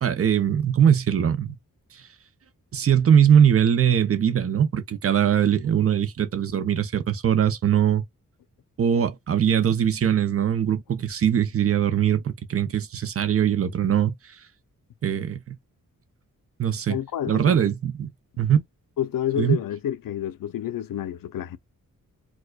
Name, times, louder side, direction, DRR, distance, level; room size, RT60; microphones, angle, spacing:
voice 1, 0.0-1.6 2.7-8.0 8.8-14.1 15.0-15.5 16.6-17.0 17.3-18.1 18.4-18.6 19.4-19.6, right 8 dB, 45° right, 0.5 m, -21 dB
voice 2, 16.9-17.6 19.0-21.6, left 11 dB, 85° left, 0.5 m, -29 dB
4.6 x 2.1 x 2.2 m
wide cardioid pair, 175°, 32 cm